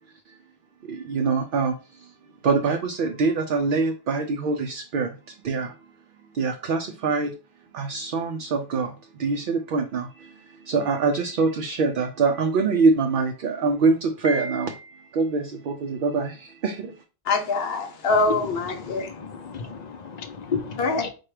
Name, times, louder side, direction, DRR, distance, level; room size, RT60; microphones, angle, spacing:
voice 1, 0.8-2.1 2.4-5.2 5.4-5.7 6.3-7.3 7.7-14.7 15.1-16.9, right 4 dB, 60° right, 0.6 m, -24 dB
Piano, 14.2-15.3, right 1 dB, 25° left, 1.0 m, -36 dB
voice 2, 17.3-19.1 20.8-21.1, left 3 dB, 60° left, 1.0 m, -24 dB
voice 3, 19.3-21.1, left 6 dB, 45° left, 0.6 m, -33 dB
4.5 x 2.3 x 4.7 m
omnidirectional pair, 1.1 m